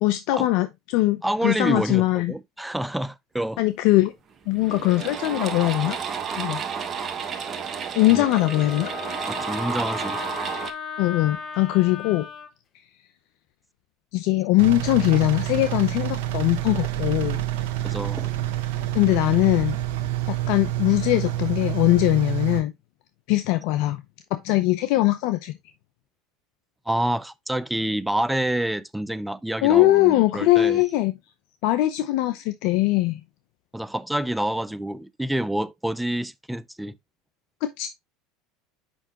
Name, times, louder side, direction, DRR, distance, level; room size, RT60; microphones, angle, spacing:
voice 1, 0.0-2.3 3.6-4.1 4.5-6.0 6.4-6.6 8.0-8.9 11.0-12.3 14.1-17.4 18.9-19.8 20.3-22.7 23.3-24.0 24.3-25.6 29.6-31.1 31.6-33.2 37.6-37.9, left 17 dB, 65° left, 0.7 m, -21 dB
voice 2, 1.2-3.6 8.1-8.3 9.3-10.2 17.8-18.3 26.9-30.8 33.7-37.0, right 1 dB, 5° right, 0.5 m, -27 dB
sound 1, 4.0-4.1 4.5-10.7, right 6 dB, 35° right, 1.2 m, -31 dB
Wind instrument woodwind instrument, 8.1-12.5, left 8 dB, 40° left, 1.1 m, -36 dB
Engine, 14.6-22.6, right 14 dB, 75° right, 1.0 m, -28 dB
7.1 x 5.5 x 2.9 m
hypercardioid pair, 90°, 0 cm